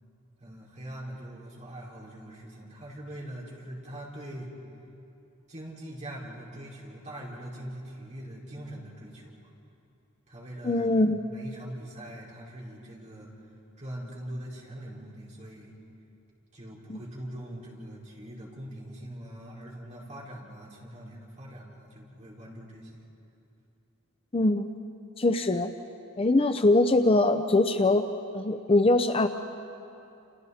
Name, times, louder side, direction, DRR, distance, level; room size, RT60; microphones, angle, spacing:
voice 1, 0.4-4.5 5.5-9.5 10.3-13.3 13.8-15.7 16.5-23.0, right 1 dB, 35° right, -5 dB, 5.0 m, -42 dB
voice 2, 10.6-11.2 16.9-17.0 24.3-24.7 25.2-25.7 26.2-28.0 28.3-29.3, left 2 dB, 25° left, 7 dB, 0.6 m, -22 dB
29.5 x 28.5 x 4.3 m, 2.7 s
head